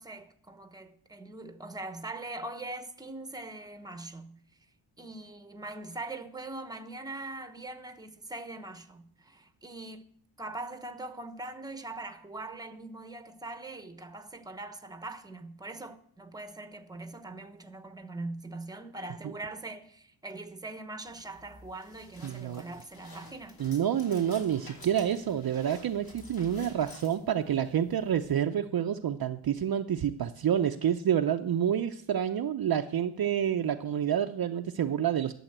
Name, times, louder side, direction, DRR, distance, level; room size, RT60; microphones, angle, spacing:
voice 1, 0.0-4.4 5.0-10.1 10.4-23.6, right 2 dB, 10° right, 1.0 m, -42 dB
sound 1, 21.1-28.4, left 2 dB, 50° left, 3.0 m, -52 dB
voice 2, 22.2-22.6 23.6-35.4, right 9 dB, 50° right, 0.7 m, -28 dB
12.0 x 7.1 x 7.8 m
cardioid pair, 115°, 47 cm